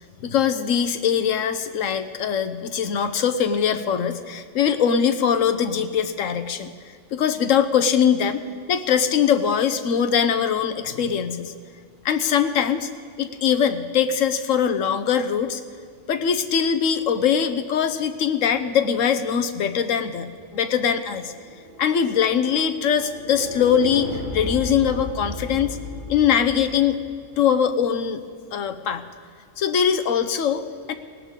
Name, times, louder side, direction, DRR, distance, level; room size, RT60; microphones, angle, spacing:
voice 1, 0.2-6.7 7.1-8.4 8.7-11.5 12.0-12.9 13.2-15.6 16.1-21.3 21.8-25.8 26.1-27.0 27.4-28.2 28.5-29.0 29.6-30.9, left 8 dB, 85° left, 9 dB, 1.2 m, -22 dB
sound 1, 21.2-26.7, left 1 dB, 50° left, 6.0 m, -35 dB
19.0 x 17.5 x 3.7 m, 2.1 s
omnidirectional pair, 1.3 m